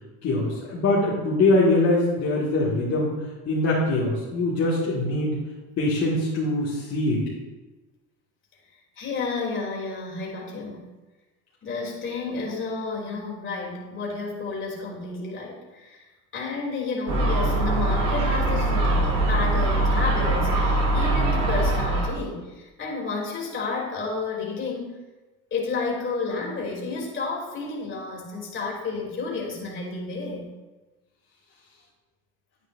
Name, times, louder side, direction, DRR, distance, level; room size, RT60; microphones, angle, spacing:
voice 1, 0.2-3.1 3.5-5.3 5.8-7.3, left 2 dB, 50° left, -7 dB, 2.1 m, -23 dB
voice 2, 9.0-10.8 11.6-16.0 16.3-25.0 25.5-30.5, left 3 dB, 35° left, -3 dB, 3.1 m, -31 dB
Gull seagull, 17.1-22.1, right 2 dB, 65° right, 3.0 m, -22 dB
10.0 x 9.1 x 2.6 m, 1.2 s
supercardioid pair, 100°, 34 cm